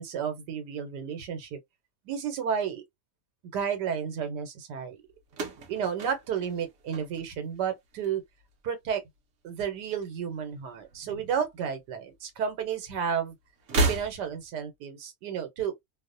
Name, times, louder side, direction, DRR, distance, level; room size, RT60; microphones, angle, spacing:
voice 1, 0.0-1.6 2.1-2.8 3.5-5.0 5.7-8.2 8.6-9.0 9.4-13.3 13.9-15.8, right 7 dB, 80° right, 1.3 m, -32 dB
sound 1, 5.3-7.6 7.9-8.5 9.6-10.6 10.8-11.0 12.1-12.2 13.6-14.6, right 2 dB, 60° right, 0.9 m, -32 dB
2.8 x 2.0 x 2.5 m
omnidirectional pair, 1.8 m